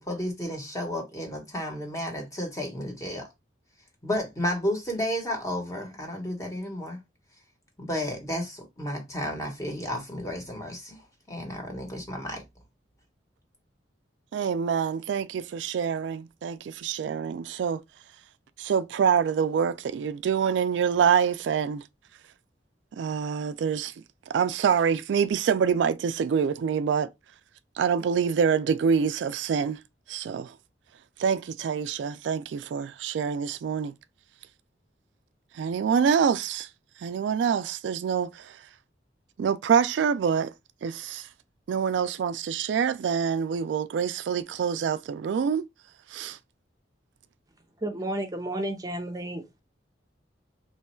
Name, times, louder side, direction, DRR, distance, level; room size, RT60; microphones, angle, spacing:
voice 1, 0.1-3.3 4.0-7.0 7.8-11.0 11.3-12.4, left 1 dB, 20° left, 1.0 m, -32 dB
voice 2, 14.3-17.8 18.6-21.8 23.0-23.9 24.3-27.1 27.8-29.8 30.1-30.5 31.2-33.9 35.6-36.7 37.0-38.6 39.4-40.5 40.8-41.3 41.7-45.7 46.1-46.4, right 7 dB, 80° right, 0.3 m, -26 dB
voice 3, 47.8-49.6, right 1 dB, 20° right, 0.6 m, -32 dB
3.0 x 2.3 x 4.3 m
head